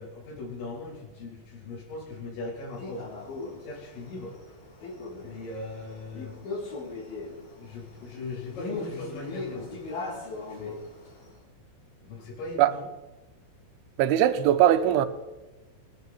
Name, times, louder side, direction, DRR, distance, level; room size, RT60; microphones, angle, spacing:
voice 1, 0.0-3.1 3.6-4.4 5.2-6.4 7.3-9.8 10.5-10.8 12.0-12.9, left 2 dB, 70° left, 5.9 m, -39 dB
Male speech man speaking, 2.8-11.3, left 3 dB, 50° left, 5.4 m, -39 dB
voice 2, 14.0-15.1, right 11 dB, 80° right, 3.1 m, -20 dB
24.5 x 10.0 x 4.3 m
omnidirectional pair, 5.6 m